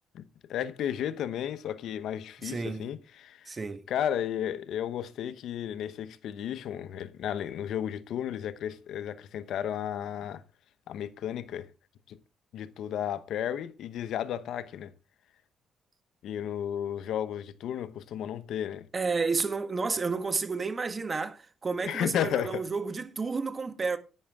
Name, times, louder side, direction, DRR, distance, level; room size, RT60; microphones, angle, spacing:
voice 1, 0.5-3.0 3.2-3.5 3.9-10.4 10.9-11.7 12.1-12.2 12.5-14.9 16.2-18.9 21.9-22.6, left 10 dB, 75° left, 0.9 m, -33 dB
voice 2, 2.4-2.9 3.5-3.8 18.9-24.0, right 4 dB, 30° right, 1.6 m, -31 dB
11.0 x 10.0 x 3.6 m
cardioid pair, 90°, 0 cm